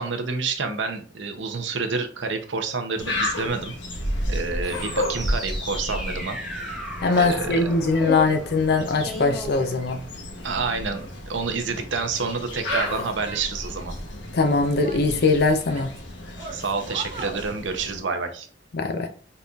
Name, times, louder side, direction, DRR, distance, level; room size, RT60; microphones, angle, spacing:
voice 1, 0.0-3.7 4.3-6.4 7.1-7.6 10.4-13.9 16.5-18.5, right 4 dB, 85° right, 0.7 m, -28 dB
sound 1, 3.0-18.0, left 1 dB, 80° left, 1.0 m, -33 dB
sound 2, 4.6-10.3, left 1 dB, ahead, 0.8 m, -35 dB
voice 2, 7.0-10.0 14.3-15.9 18.7-19.1, left 3 dB, 60° left, 0.5 m, -21 dB
Female speech woman speaking / Yell, 12.7-14.0 14.5-16.0 16.4-17.4, right 5 dB, 35° right, 0.9 m, -38 dB
4.1 x 3.9 x 2.4 m
head